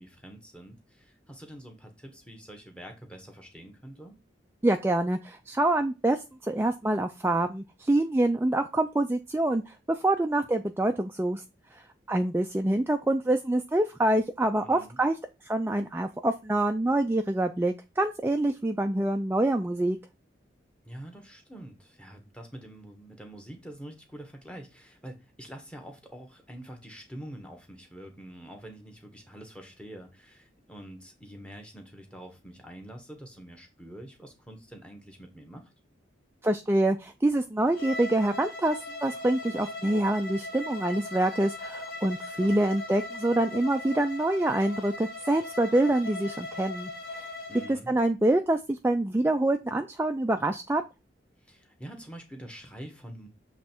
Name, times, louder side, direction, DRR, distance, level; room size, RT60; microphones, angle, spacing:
voice 1, 0.0-4.1 14.6-15.0 20.8-35.7 42.3-42.6 47.5-47.9 51.4-53.3, right 1 dB, 5° left, 1.1 m, -46 dB
voice 2, 4.6-11.4 11.7-15.1 15.4-20.0 36.4-47.3 47.7-50.8, right 1 dB, 10° right, 0.3 m, -26 dB
Bowed string instrument, 37.7-47.7, left 2 dB, 50° left, 1.7 m, -39 dB
7.3 x 3.2 x 4.4 m
head